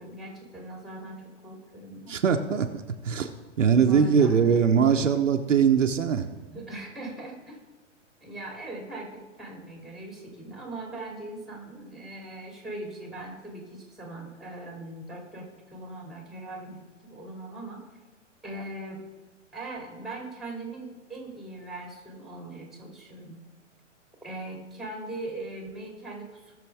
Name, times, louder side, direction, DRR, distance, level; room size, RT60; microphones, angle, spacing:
voice 1, 0.0-2.2 3.6-4.6 4.9-5.0 6.5-7.6 8.2-17.9 18.4-19.0 19.5-23.4 24.2-26.5, right 2 dB, ahead, 0 dB, 2.8 m, -40 dB
voice 2, 2.1-2.7 3.0-3.3 3.6-6.3, right 6 dB, 75° right, 5 dB, 1.1 m, -21 dB
19.0 x 6.7 x 3.5 m, 1.2 s
hypercardioid pair, 120°, 37 cm